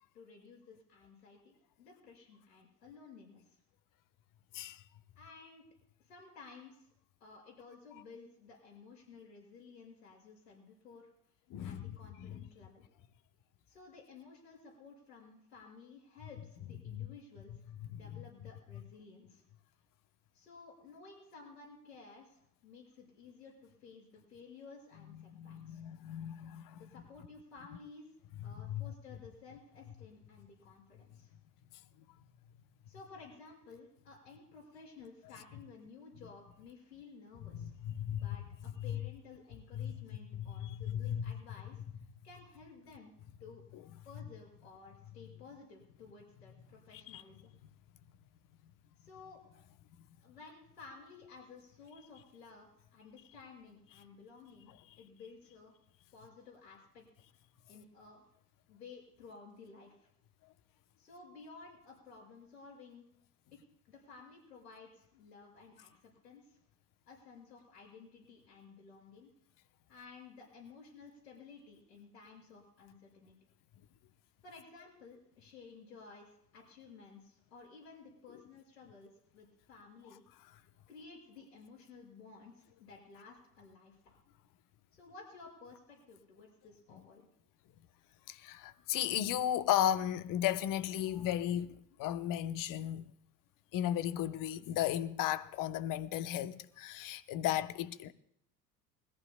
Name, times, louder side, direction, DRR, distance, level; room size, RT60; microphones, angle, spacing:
voice 1, 0.1-3.6 5.2-5.7 6.0-6.9 7.2-11.1 11.6-12.8 13.7-17.5 17.9-19.4 20.3-25.8 26.8-28.1 28.4-31.3 32.9-37.7 38.2-38.4 38.8-41.8 42.2-43.1 43.4-43.6 44.0-47.5 49.0-49.4 50.2-54.7 55.0-55.7 56.1-57.1 57.7-58.2 58.7-60.1 61.0-63.0 63.5-63.6 63.9-66.6 67.1-69.3 69.9-73.4 74.4-80.2 80.9-84.2 84.9-87.3, left 4 dB, 80° left, 5.8 m, -55 dB
voice 2, 11.5-12.0 12.2-12.4 16.9-17.1 18.1-18.2 25.1-26.8 28.5-28.8 37.5-38.3 38.8-39.0 39.7-40.0 40.3-41.3 43.7-43.8 47.1-47.2 88.3-93.1 93.7-98.1, left 11 dB, 40° left, 0.9 m, -35 dB
22.5 x 14.5 x 2.3 m
figure-of-eight pair, 70°, 48 cm